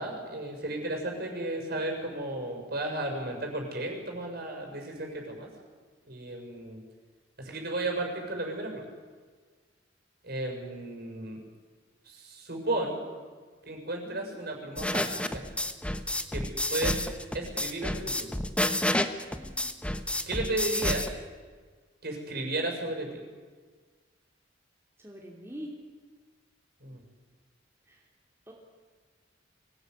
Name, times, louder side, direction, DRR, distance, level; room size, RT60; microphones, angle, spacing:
voice 1, 0.0-5.5 6.0-6.8 7.4-8.9 10.2-11.4 12.0-13.1 13.6-15.5 16.3-16.4 16.7-17.0 17.3-18.3 20.2-21.1 22.0-23.2 26.8-27.0, right 2 dB, 55° right, 2 dB, 6.8 m, -34 dB
voice 2, 14.0-14.4 19.3-19.8 25.0-25.7 27.8-28.1 28.5-28.6, equal, 15° right, -2 dB, 3.0 m, -45 dB
sound 1, 14.8-21.1, left 1 dB, 5° left, 1.2 m, -30 dB
24.5 x 18.0 x 9.5 m, 1.5 s
head